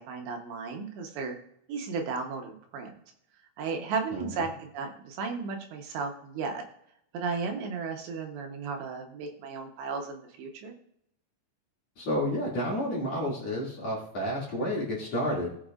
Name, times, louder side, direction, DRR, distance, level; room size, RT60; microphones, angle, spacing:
voice 1, 0.0-1.3 1.7-2.9 3.6-6.6 7.1-10.7, right 4 dB, 75° right, 3 dB, 3.2 m, -34 dB
voice 2, 4.1-4.5 12.0-15.5, equal, 40° left, -5 dB, 2.9 m, -30 dB
19.0 x 7.2 x 2.5 m, 0.73 s
omnidirectional pair, 5.3 m